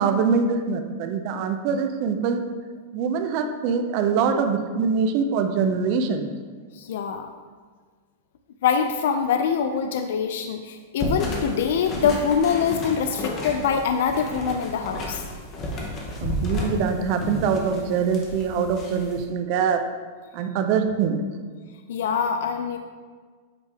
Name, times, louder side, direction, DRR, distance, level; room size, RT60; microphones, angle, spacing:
voice 1, 0.0-2.5 2.9-6.3 16.2-19.9 20.3-21.2, right 6 dB, 35° right, 6 dB, 0.4 m, -23 dB
voice 2, 6.7-7.3 8.6-15.4 21.9-22.8, left 7 dB, 65° left, 7 dB, 0.3 m, -24 dB
sound 1, 11.0-19.2, left 1 dB, 20° left, 0.7 m, -32 dB
8.1 x 3.4 x 3.4 m, 1.5 s
supercardioid pair, 175°, 0 cm